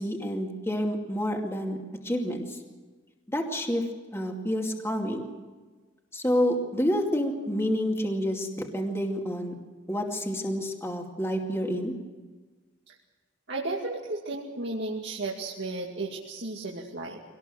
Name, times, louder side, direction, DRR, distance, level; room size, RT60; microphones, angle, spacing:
voice 1, 0.0-1.8 2.0-2.6 3.3-3.9 4.1-5.3 6.1-9.5 9.9-11.9, equal, 15° left, 1 dB, 2.4 m, -28 dB
voice 2, 13.5-17.2, right 2 dB, 65° right, -3 dB, 2.5 m, -34 dB
24.5 x 18.5 x 7.7 m, 1.3 s
head